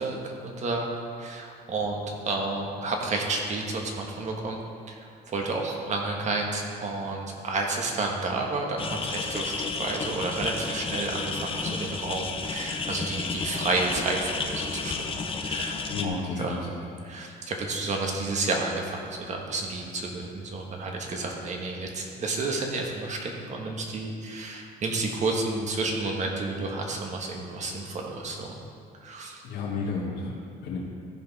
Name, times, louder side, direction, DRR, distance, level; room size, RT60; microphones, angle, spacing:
voice 1, 0.0-4.6 4.9-5.0 5.3-16.6 17.0-28.6 29.0-29.4, right 3 dB, 45° right, 1 dB, 1.6 m, -31 dB
sound 1, 8.8-16.1, left 4 dB, 30° left, 0.8 m, -32 dB
voice 2, 15.9-17.0 29.4-30.8, left 4 dB, 75° left, -4 dB, 1.9 m, -32 dB
14.5 x 5.3 x 4.2 m, 2.4 s
cardioid pair, 110°, 17 cm